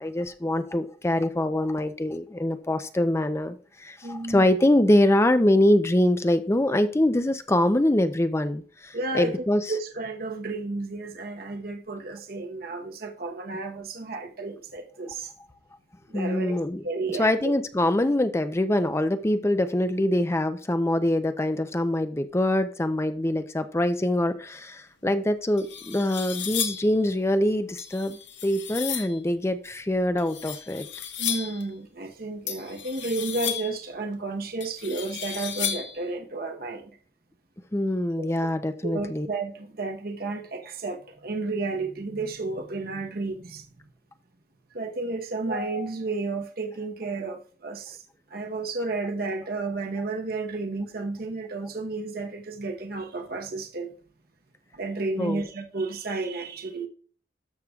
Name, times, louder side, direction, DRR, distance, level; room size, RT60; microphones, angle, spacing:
voice 1, 0.0-9.6 16.1-16.8 17.2-30.9 37.7-39.3 55.2-55.4, left 1 dB, 15° left, 0.5 m, -24 dB
voice 2, 4.0-4.5 8.9-15.3 16.1-17.5 31.2-36.9 38.2-38.3 38.8-43.6 44.7-48.0 48.3-53.9 54.7-56.9, right 3 dB, 60° right, 1.0 m, -32 dB
sound 1, 25.1-25.2 25.6-27.0 27.8-29.2 30.2-31.6 32.5-33.8 34.6-36.0, left 9 dB, 90° left, 1.3 m, -33 dB
12.5 x 6.6 x 2.4 m
head